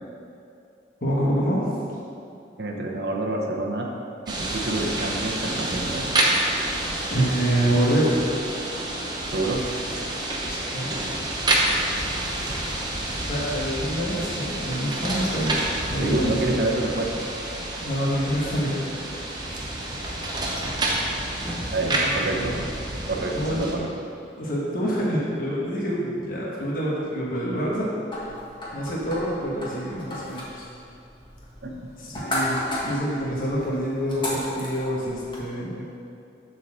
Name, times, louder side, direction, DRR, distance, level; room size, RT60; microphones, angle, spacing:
voice 1, 1.0-1.6 7.1-8.2 10.7-10.9 13.3-15.6 15.9-16.4 17.8-19.2 21.8-22.7 23.3-23.7 24.4-27.9 28.7-30.7 32.0-36.0, equal, 50° left, -6 dB, 1.3 m, -26 dB
voice 2, 2.6-3.9 4.3-6.1 9.3-9.7 12.4-12.5 16.0-17.2 21.7-22.6 23.1-24.1 31.6-31.8, right 2 dB, 65° right, 0 dB, 0.9 m, -28 dB
sound 1, 4.3-23.7, right 1 dB, 25° right, 0.8 m, -28 dB
sound 2, 28.1-35.4, left 1 dB, 25° left, 1.4 m, -34 dB
7.4 x 4.2 x 6.4 m, 2.5 s
head